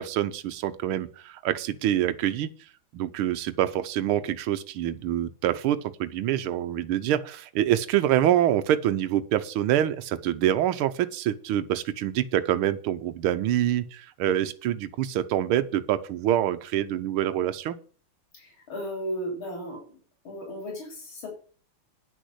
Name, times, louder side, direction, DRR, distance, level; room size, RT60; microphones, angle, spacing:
voice 1, 0.0-2.5 2.9-17.8, right 11 dB, 90° right, 11 dB, 1.6 m, -26 dB
voice 2, 18.3-20.0 20.2-21.3, equal, 70° left, 1 dB, 4.4 m, -35 dB
10.0 x 6.4 x 7.9 m, 0.41 s
omnidirectional pair, 2.3 m